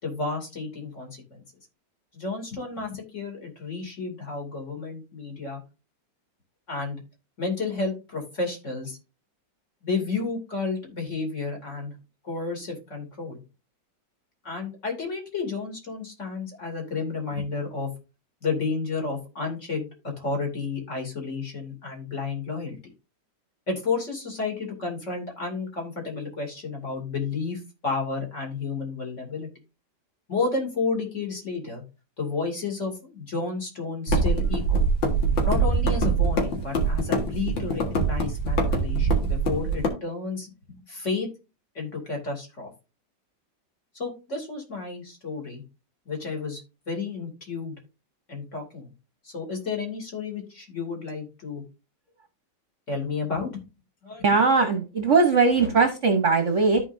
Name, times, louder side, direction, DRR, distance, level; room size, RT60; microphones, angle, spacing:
voice 1, 0.0-1.4 2.1-5.6 6.7-7.0 7.4-9.0 9.8-11.9 12.2-13.4 14.4-17.9 18.4-19.9 20.2-22.8 23.7-29.5 30.3-31.8 32.2-34.8 35.4-41.3 41.7-42.7 43.9-45.6 46.1-47.7 48.3-48.9 49.2-51.6 52.9-53.6 54.0-54.2, left 4 dB, 40° left, 1 dB, 3.1 m, -31 dB
sound 1, 34.1-39.9, right 3 dB, 80° left, 2.5 m, -23 dB
voice 2, 54.2-56.8, right 4 dB, 45° right, 6 dB, 1.1 m, -20 dB
13.5 x 4.7 x 2.7 m, 0.30 s
omnidirectional pair, 2.0 m